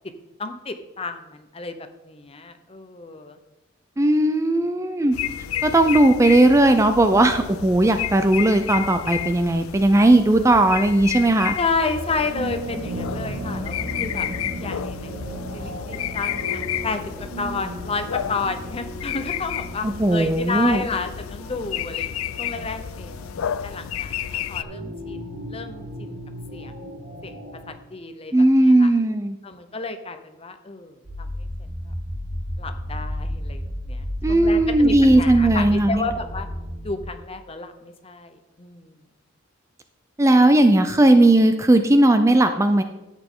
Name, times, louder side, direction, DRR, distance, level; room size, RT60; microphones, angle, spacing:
voice 1, 0.4-1.7 2.0-3.4 11.6-14.3 14.6-15.2 15.5-17.0 17.4-23.1 23.6-26.2 26.5-26.7 27.0-27.4 27.7-28.3 28.8-28.9 29.4-31.5 31.9-32.0 32.6-36.5 36.8-39.0, left 4 dB, 30° left, 8 dB, 0.7 m, -31 dB
voice 2, 4.0-5.2 5.6-11.5 19.8-20.8 28.3-29.4 34.2-36.1 40.2-42.8, right 1 dB, 15° right, 8 dB, 0.4 m, -17 dB
sound 1, 5.1-24.6, left 10 dB, 80° left, 0.4 m, -31 dB
sound 2, 11.8-27.7, right 1 dB, 85° right, 2.2 m, -36 dB
sound 3, 31.0-37.1, equal, 50° right, 2.5 m, -31 dB
11.0 x 8.3 x 3.7 m, 1.0 s
head